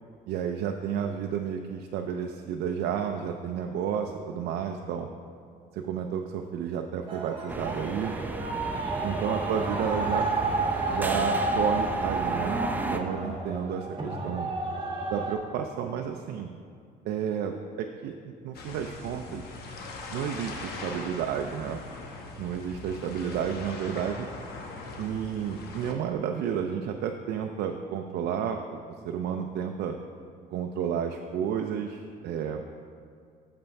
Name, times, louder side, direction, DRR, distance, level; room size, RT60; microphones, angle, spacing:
voice 1, 0.3-5.1 5.7-8.1 9.0-10.3 10.9-14.5 15.1-16.5 17.1-19.4 20.1-21.8 22.4-24.3 25.0-28.8 29.0-30.0 30.5-32.7, right 8 dB, 75° right, 4 dB, 0.5 m, -31 dB
sound 1, 7.1-15.3, right 3 dB, 30° right, 1.2 m, -31 dB
sound 2, 7.5-13.0, right 2 dB, 10° right, 0.5 m, -34 dB
sound 3, 18.5-25.9, left 3 dB, 70° left, 1.0 m, -41 dB
6.8 x 5.6 x 5.2 m, 2.3 s
cardioid pair, 110°, 17 cm